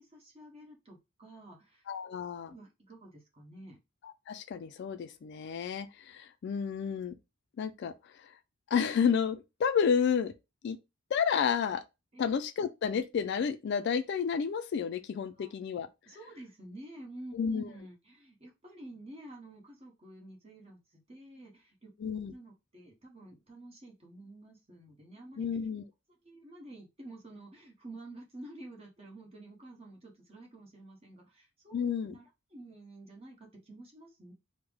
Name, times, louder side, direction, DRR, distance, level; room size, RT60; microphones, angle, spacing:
voice 1, 0.1-2.2 2.5-3.8 12.1-12.2 15.4-15.5 16.1-21.9 22.3-25.4 26.2-34.3, right 1 dB, 30° right, 1.0 m, -50 dB
voice 2, 1.9-2.5 4.0-7.2 7.6-8.3 8.7-10.3 10.6-10.8 11.1-11.8 12.2-15.9 17.3-17.7 22.0-22.3 25.4-25.8 31.7-32.1, left 7 dB, 55° left, 0.3 m, -31 dB
3.4 x 2.0 x 3.4 m
head